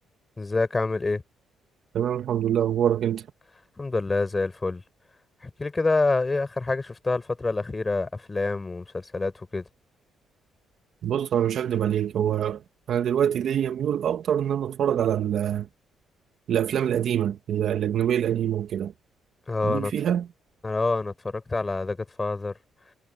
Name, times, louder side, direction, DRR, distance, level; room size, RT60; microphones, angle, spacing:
voice 1, 0.4-1.2 3.8-4.8 5.4-9.6 19.5-19.9 20.6-22.5, left 3 dB, 25° left, 4.3 m, -27 dB
voice 2, 1.9-3.2 11.0-12.6 12.9-15.7 16.5-18.9 19.6-20.2, right 9 dB, 65° right, 1.6 m, -25 dB
cardioid pair, 90°, 0 cm